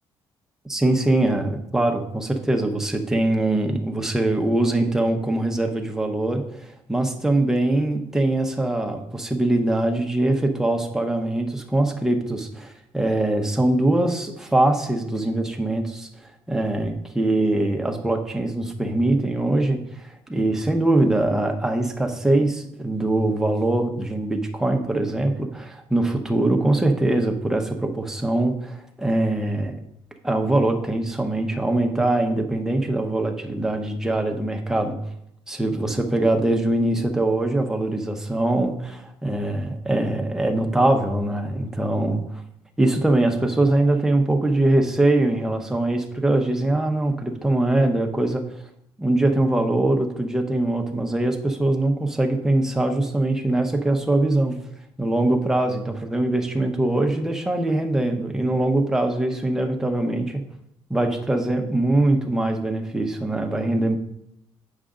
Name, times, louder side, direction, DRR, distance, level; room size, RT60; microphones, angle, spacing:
voice 1, 0.7-16.1 16.5-29.8 30.2-35.0 35.5-42.4 42.8-48.4 49.0-54.6 55.0-60.4 60.9-64.0, right 2 dB, 5° right, 3 dB, 0.8 m, -22 dB
8.2 x 6.4 x 3.7 m, 0.78 s
cardioid pair, 165°, 10 cm